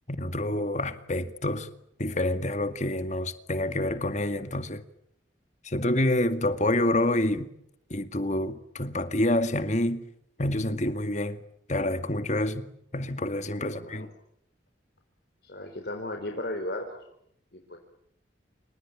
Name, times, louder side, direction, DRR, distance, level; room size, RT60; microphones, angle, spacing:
voice 1, 0.1-1.7 2.0-4.8 5.6-7.5 7.9-10.0 10.4-11.4 11.7-12.7 12.9-14.1, left 1 dB, 40° left, 2.0 m, -27 dB
voice 2, 13.6-14.1 15.4-17.0 17.5-17.8, left 1 dB, 55° left, 4.5 m, -35 dB
29.0 x 27.5 x 7.3 m
head